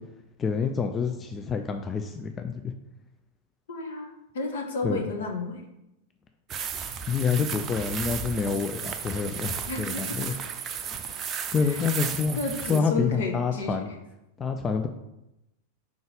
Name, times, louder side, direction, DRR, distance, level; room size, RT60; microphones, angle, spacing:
voice 1, 0.4-2.7 4.8-5.0 7.1-10.3 11.5-13.9 14.4-14.9, left 5 dB, 20° left, 5 dB, 0.4 m, -27 dB
voice 2, 3.7-4.1 4.3-5.6 9.7-10.2 11.6-11.8 12.4-13.9, left 3 dB, 60° left, 3 dB, 1.1 m, -32 dB
sound 1, 6.5-12.8, right 7 dB, 30° right, 0.5 m, -34 dB
4.8 x 3.9 x 5.1 m, 0.90 s
figure-of-eight pair, 90°, 0 cm